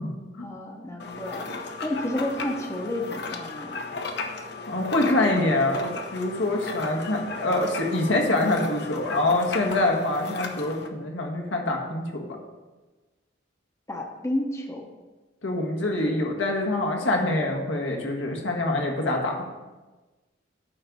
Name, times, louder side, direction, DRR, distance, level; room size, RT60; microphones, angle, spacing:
voice 1, 0.4-1.5 1.8-3.8 13.9-14.9 16.0-16.1, left 1 dB, 15° left, 1 dB, 0.9 m, -31 dB
sound 1, 1.0-10.9, left 3 dB, 60° left, 0.9 m, -35 dB
voice 2, 4.7-12.2 15.4-19.4, left 2 dB, 85° left, 1 dB, 1.6 m, -25 dB
9.6 x 4.0 x 6.9 m, 1.2 s
head